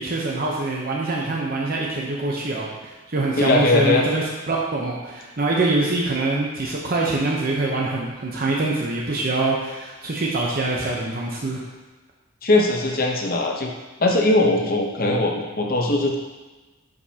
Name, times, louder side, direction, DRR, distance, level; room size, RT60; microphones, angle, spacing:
voice 1, 0.0-11.6, right 2 dB, 45° right, -3 dB, 0.8 m, -24 dB
voice 2, 3.4-4.1 12.4-13.7 14.0-16.2, left 2 dB, 45° left, 1 dB, 0.9 m, -20 dB
11.0 x 5.1 x 2.8 m, 1.2 s
head